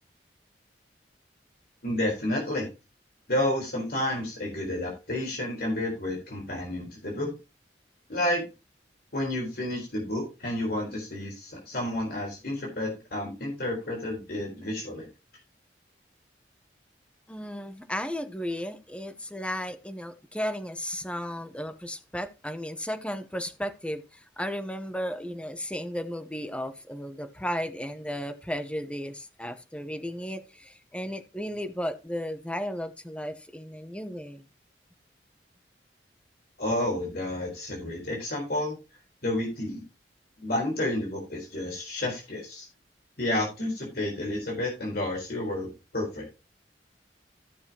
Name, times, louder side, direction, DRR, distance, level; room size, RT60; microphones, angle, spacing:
voice 1, 1.8-2.7 3.3-7.3 8.1-8.5 9.1-15.1 36.6-38.8 39.2-39.8 40.4-42.7 43.2-46.3, left 1 dB, 60° left, 4.1 m, -30 dB
voice 2, 17.3-34.4, equal, 5° left, 0.9 m, -34 dB
14.5 x 6.4 x 3.0 m
head